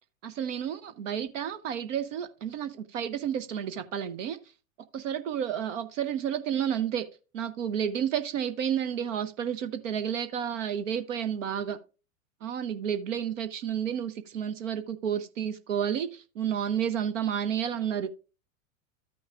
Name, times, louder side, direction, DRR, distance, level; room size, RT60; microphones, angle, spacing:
voice 1, 0.2-4.4 4.9-7.1 7.3-11.8 12.4-18.1, right 9 dB, 65° right, 0.8 m, -31 dB
13.5 x 6.2 x 2.4 m
hypercardioid pair, 100°, 41 cm